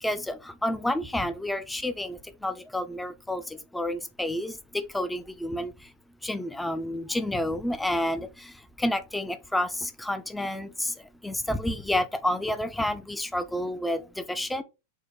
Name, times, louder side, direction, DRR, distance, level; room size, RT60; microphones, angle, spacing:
voice 1, 0.0-5.9 6.2-14.6, left 1 dB, 5° left, 0.4 m, -30 dB
4.4 x 2.0 x 3.4 m
figure-of-eight pair, 90°, 0 cm